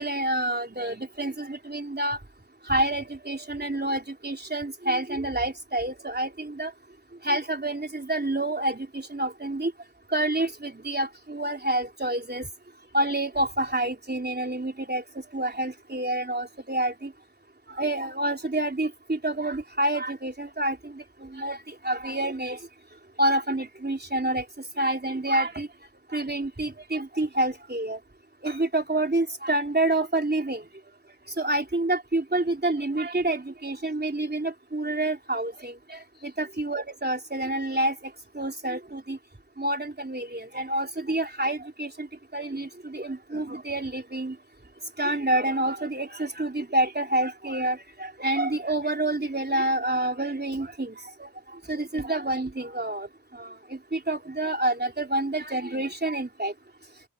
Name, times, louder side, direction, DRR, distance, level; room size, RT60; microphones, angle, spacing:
voice 1, 0.0-2.2 2.7-6.7 7.2-9.7 10.1-12.5 12.9-15.0 15.3-17.1 17.7-22.6 23.2-24.5 24.8-25.7 26.1-28.0 28.4-30.6 31.4-38.0 38.4-39.2 39.6-42.1 42.3-44.4 45.0-50.9 51.2-51.3 51.7-53.1 53.3-56.5, right 1 dB, 30° right, 3.4 m, -28 dB
wide cardioid pair, 50°, 34 cm